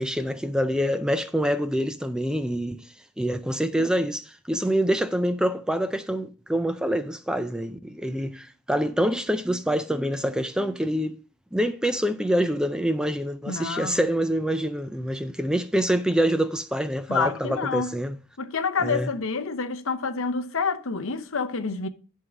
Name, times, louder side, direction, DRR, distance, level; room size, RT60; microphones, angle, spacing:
voice 1, 0.0-11.2 11.5-18.2 18.8-19.1, equal, 5° right, 0.3 m, -26 dB
voice 2, 13.5-14.0 17.1-18.0 18.4-21.9, left 5 dB, 65° left, 0.8 m, -28 dB
11.0 x 3.7 x 6.1 m
head